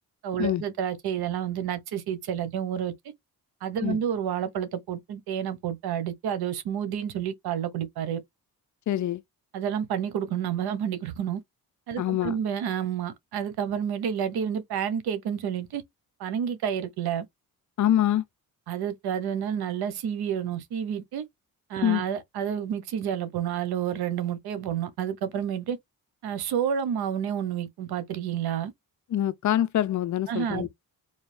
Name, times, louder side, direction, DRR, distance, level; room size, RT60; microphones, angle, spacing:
voice 1, 0.2-2.9 3.6-8.2 9.5-11.4 11.9-15.8 16.2-17.2 18.7-21.2 21.7-25.8 26.2-28.7 30.3-30.7, right 8 dB, 90° right, 1.0 m, -29 dB
voice 2, 8.9-9.2 12.0-12.4 17.8-18.2 21.8-22.0 29.1-30.7, left 12 dB, 50° left, 0.5 m, -25 dB
4.0 x 2.7 x 3.4 m
cardioid pair, 115°, 37 cm